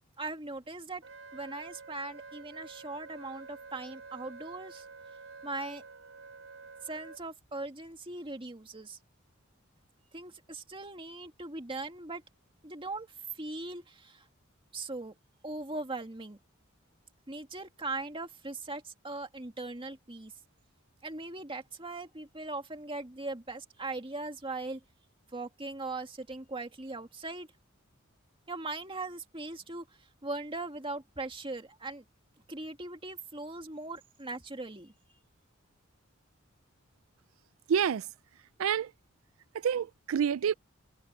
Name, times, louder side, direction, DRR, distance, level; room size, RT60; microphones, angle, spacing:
voice 1, 0.2-1.0 1.3-4.9 5.4-5.8 6.8-9.0 10.1-12.2 12.6-13.1 13.3-14.2 14.7-15.2 15.4-16.4 17.3-20.3 21.0-24.8 25.3-27.5 28.5-29.9 30.2-32.0 32.5-34.9, right 2 dB, 25° right, 2.1 m, -40 dB
Wind instrument woodwind instrument, 1.0-7.2, right 4 dB, 75° right, 3.3 m, -49 dB
voice 2, 37.7-38.1 38.6-38.9 39.5-40.5, right 7 dB, 90° right, 0.4 m, -28 dB
head